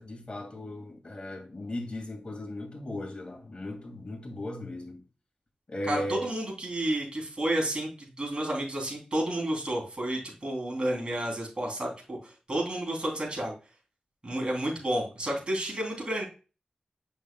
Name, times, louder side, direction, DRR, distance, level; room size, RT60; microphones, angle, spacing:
voice 1, 0.0-5.0 5.7-6.3, left 1 dB, 40° left, 2.4 m, -37 dB
voice 2, 5.9-13.5 14.2-16.2, right 1 dB, 40° right, 3.2 m, -31 dB
6.9 x 6.1 x 2.3 m
wide cardioid pair, 65°, 3 cm